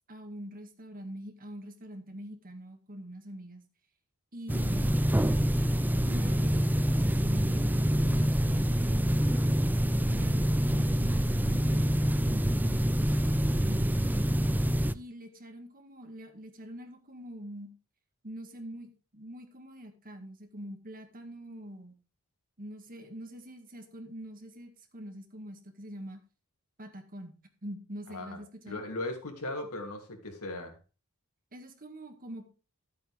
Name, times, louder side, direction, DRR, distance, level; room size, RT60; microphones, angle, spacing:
voice 1, 0.1-3.6 4.3-5.0 6.0-9.2 10.1-13.1 14.9-17.7 18.2-22.0 22.6-26.2 26.8-27.3 27.6-28.8 31.5-32.4, equal, 40° right, 5 dB, 1.9 m, -44 dB
sound 1, 4.5-14.9, equal, 10° right, 0.4 m, -26 dB
voice 2, 14.5-14.9 28.1-28.4 28.7-30.8, left 2 dB, 85° left, 3 dB, 2.8 m, -38 dB
12.5 x 8.6 x 3.4 m, 0.33 s
head